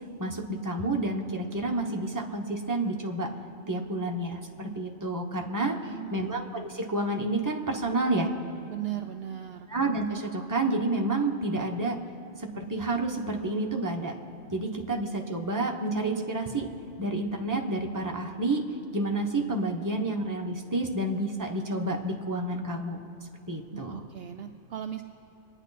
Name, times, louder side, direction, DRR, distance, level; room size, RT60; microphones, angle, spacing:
voice 1, 0.2-3.3 3.7-5.8 6.1-8.3 9.7-12.0 12.4-14.2 14.5-16.6 17.0-18.6 18.9-23.0 23.5-24.0, right 2 dB, 15° right, 1 dB, 1.2 m, -29 dB
voice 2, 5.9-6.3 8.7-9.7 14.9-15.0 23.7-25.0, right 11 dB, 65° right, 6 dB, 0.8 m, -37 dB
26.5 x 9.9 x 4.1 m, 2.8 s
omnidirectional pair, 1.2 m